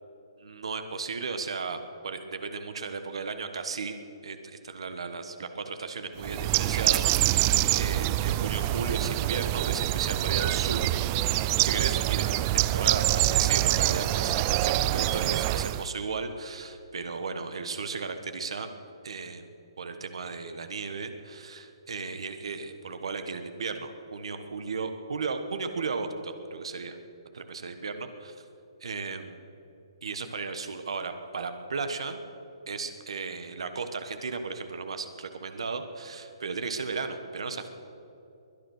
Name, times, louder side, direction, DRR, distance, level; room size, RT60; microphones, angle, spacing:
voice 1, 0.4-4.0 4.2-10.9 11.2-18.7 19.0-19.5 19.8-27.0 27.3-28.4 28.8-29.4 30.0-32.2 32.7-37.7, right 4 dB, 75° right, 8 dB, 1.3 m, -35 dB
Bird, 6.2-15.9, right 15 dB, 25° right, 0.4 m, -25 dB
22.5 x 9.2 x 6.5 m, 2.8 s
hypercardioid pair, 155°, 3 cm